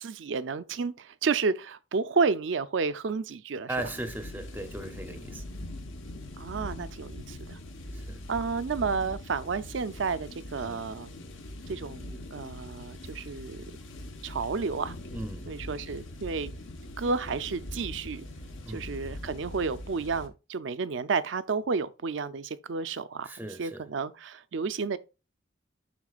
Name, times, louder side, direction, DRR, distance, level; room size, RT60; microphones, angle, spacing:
voice 1, 0.0-3.8 6.4-7.6 8.3-11.1 11.7-13.6 14.2-14.9 15.5-16.5 17.0-18.3 18.7-25.0, right 4 dB, 65° right, 0.5 m, -31 dB
sound 1, 3.7-20.3, left 1 dB, 75° left, 1.1 m, -42 dB
voice 2, 3.7-5.4 7.9-8.2 10.6-10.8 15.1-15.5 18.6-18.8 23.2-23.8, right 1 dB, 10° right, 0.6 m, -37 dB
11.0 x 3.7 x 2.4 m
head